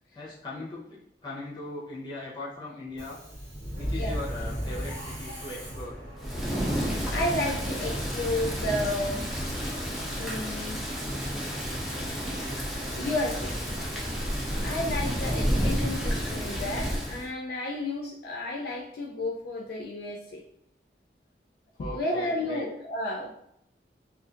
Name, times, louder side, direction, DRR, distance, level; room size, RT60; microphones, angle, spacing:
voice 1, 0.1-3.2 3.7-6.0 15.2-15.4 21.8-22.6, left 2 dB, 25° left, -6 dB, 0.8 m, -39 dB
Subway metro underground, 2.9-16.4, equal, 40° right, 1.0 m, -40 dB
Thunder / Rain, 6.2-17.3, equal, ahead, 0.4 m, -30 dB
voice 2, 7.1-9.3 10.2-10.8 13.0-13.7 14.6-20.4 21.9-23.3, left 1 dB, 60° left, -2 dB, 0.3 m, -32 dB
2.6 x 2.4 x 2.4 m, 0.77 s
head